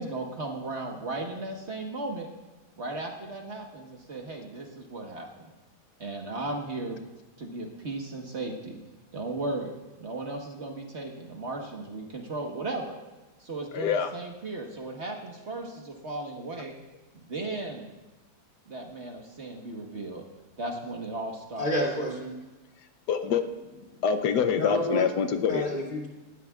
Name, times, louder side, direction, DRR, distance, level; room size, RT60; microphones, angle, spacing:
voice 1, 0.0-2.3 2.8-5.3 6.0-7.0 7.4-8.8 9.1-9.7 10.0-13.0 13.4-16.7 17.2-17.9 18.7-20.2 20.6-21.7, right 2 dB, 45° right, 1 dB, 1.6 m, -36 dB
voice 2, 13.7-14.1 23.1-25.7, left 7 dB, 90° left, 7 dB, 1.4 m, -26 dB
voice 3, 21.6-22.4 24.6-25.0 25.5-26.1, equal, 30° left, -3 dB, 2.8 m, -29 dB
19.0 x 13.0 x 2.4 m, 1.1 s
omnidirectional pair, 1.7 m